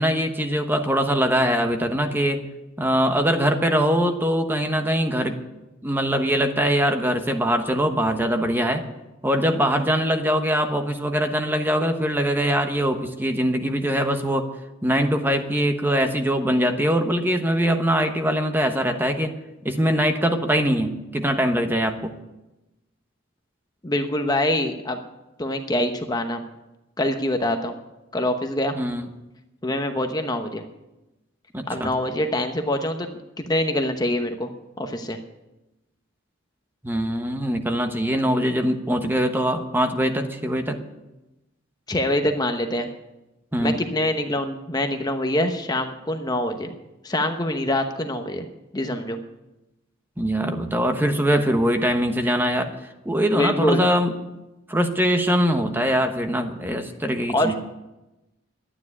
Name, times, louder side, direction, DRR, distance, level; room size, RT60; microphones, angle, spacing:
voice 1, 0.0-2.4 2.8-5.3 5.8-8.8 9.2-14.5 14.8-19.3 19.6-22.1 28.7-29.1 31.5-31.9 36.8-40.8 43.5-43.8 50.2-54.2 54.7-57.5, equal, 10° right, 6 dB, 1.1 m, -22 dB
voice 2, 23.8-25.0 25.4-26.4 27.0-27.8 28.1-28.7 29.6-30.6 31.7-34.5 34.8-35.2 41.9-42.9 43.6-46.7 47.0-48.5 48.7-49.2 53.3-53.8 57.3-57.5, left 1 dB, 20° left, 6 dB, 0.9 m, -25 dB
12.5 x 9.8 x 9.5 m, 1.0 s
head